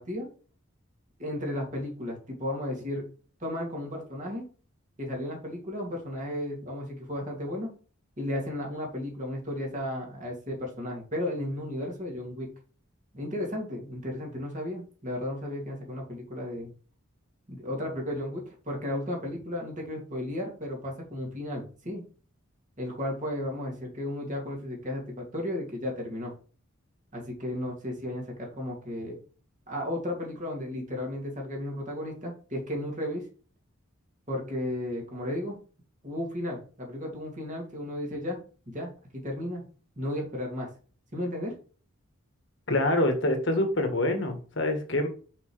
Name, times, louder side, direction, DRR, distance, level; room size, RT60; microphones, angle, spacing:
voice 1, 1.2-3.1 3.4-4.4 5.0-7.7 8.2-12.5 13.1-16.7 17.5-22.0 22.8-26.3 27.1-29.2 29.7-33.3 34.3-35.6 36.0-38.4 38.7-38.9 39.2-39.6 40.0-40.7 41.1-41.5, left 1 dB, 35° right, 0 dB, 2.4 m, -34 dB
voice 2, 42.7-45.1, left 1 dB, 60° left, 5 dB, 1.4 m, -26 dB
5.9 x 5.4 x 3.2 m, 0.38 s
head